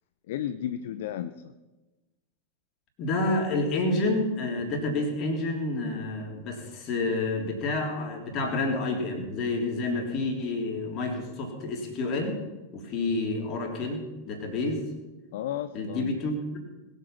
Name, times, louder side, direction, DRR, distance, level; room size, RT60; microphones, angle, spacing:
voice 1, 0.3-1.5 15.3-16.1, left 10 dB, 55° left, 12 dB, 0.6 m, -33 dB
voice 2, 3.0-12.4 12.7-14.8 15.7-16.6, left 2 dB, 35° left, 1 dB, 3.6 m, -29 dB
21.0 x 8.2 x 5.9 m, 1.1 s
figure-of-eight pair, 90°, 0 cm